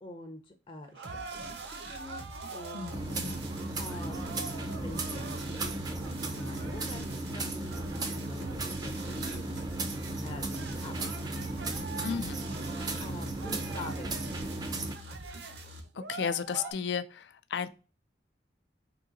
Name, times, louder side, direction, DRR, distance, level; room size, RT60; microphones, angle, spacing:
voice 1, 0.0-1.6 1.9-3.0 3.4-4.2 4.8-9.4 9.9-10.0 10.2-11.1 11.4-11.8 13.0-14.7, left 2 dB, 30° left, 0.6 m, -46 dB
sound 1, 0.9-16.7, right 4 dB, 90° right, 0.6 m, -46 dB
sound 2, 1.0-15.8, right 1 dB, 70° right, 1.0 m, -46 dB
voice 2, 2.7-3.4 12.0-12.4 15.9-17.7, left 7 dB, 80° left, 0.4 m, -34 dB
sound 3, 2.9-15.0, right 2 dB, 20° right, 0.5 m, -35 dB
3.8 x 2.8 x 3.8 m
head